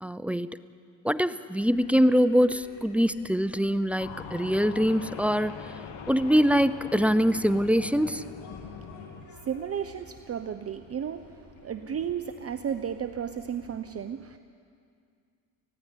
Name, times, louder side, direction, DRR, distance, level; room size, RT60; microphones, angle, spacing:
voice 1, 0.0-0.6 1.0-5.7 6.1-8.3, equal, 5° right, 15 dB, 0.6 m, -24 dB
sound 1, 1.1-2.9 3.5-5.8 6.3-7.5 8.0-10.3 10.9-12.6, left 5 dB, 25° left, 3.3 m, -54 dB
sound 2, 1.6-13.7, left 4 dB, 90° left, 3.5 m, -53 dB
sound 3, 4.0-9.3, left 6 dB, 70° left, 2.2 m, -42 dB
voice 2, 8.7-14.4, right 8 dB, 35° right, 10 dB, 0.8 m, -34 dB
19.0 x 15.5 x 9.8 m, 2.3 s
supercardioid pair, 85°, 44 cm